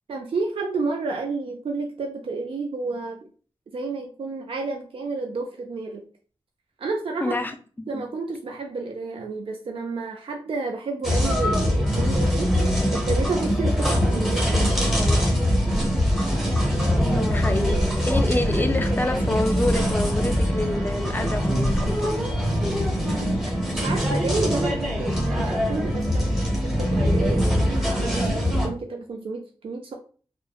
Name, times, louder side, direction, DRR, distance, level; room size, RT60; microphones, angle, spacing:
voice 1, 0.1-3.2 3.7-6.0 6.8-7.4 7.9-14.9 23.5-29.9, right 3 dB, 60° right, 2 dB, 0.4 m, -30 dB
voice 2, 7.2-8.0 16.9-17.8 18.0-22.1, left 1 dB, 20° left, 6 dB, 0.3 m, -27 dB
sound 1, 11.0-28.7, equal, 5° right, 0.7 m, -23 dB
sound 2, 13.9-23.5, left 1 dB, 90° left, 0.4 m, -36 dB
3.0 x 2.1 x 2.2 m, 0.40 s
wide cardioid pair, 110°, 10 cm